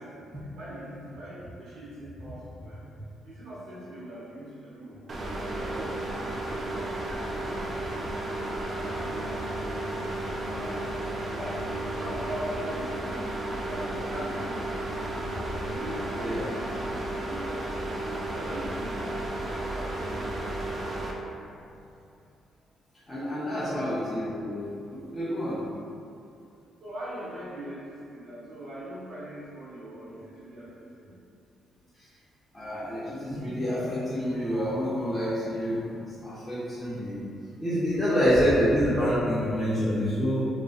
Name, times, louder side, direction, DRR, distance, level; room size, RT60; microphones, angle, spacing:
voice 1, 0.5-5.1 5.5-9.4 10.5-11.0 11.3-15.0 15.3-15.4 15.7-16.8 17.1-17.7 18.3-19.0 19.4-20.1 23.6-24.0 26.8-31.2, equal, 80° right, -11 dB, 0.7 m, -41 dB
sound 1, 5.1-21.1, right 1 dB, 40° right, 0.3 m, -33 dB
voice 2, 23.1-25.6 32.5-35.8 36.2-37.2 37.6-40.4, equal, 10° left, -12 dB, 0.6 m, -27 dB
2.4 x 2.3 x 2.3 m, 2.6 s
cardioid pair, 90°, 0 cm